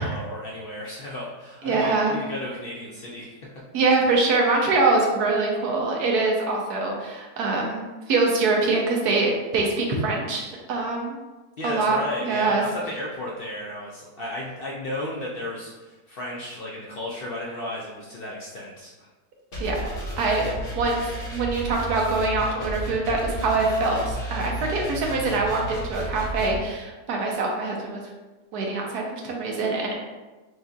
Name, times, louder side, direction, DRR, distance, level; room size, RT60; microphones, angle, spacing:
voice 1, 0.0-3.6 11.6-19.1, left 1 dB, 80° left, -4 dB, 0.5 m, -34 dB
voice 2, 1.6-2.1 3.7-11.2 11.6-12.0 12.2-12.6 19.6-19.8 20.2-28.0 28.5-29.9, right 3 dB, 75° right, -1 dB, 1.3 m, -24 dB
sound 1, 19.5-26.6, right 1 dB, 35° left, 1.1 m, -33 dB
6.2 x 2.7 x 2.4 m, 1.2 s
omnidirectional pair, 1.7 m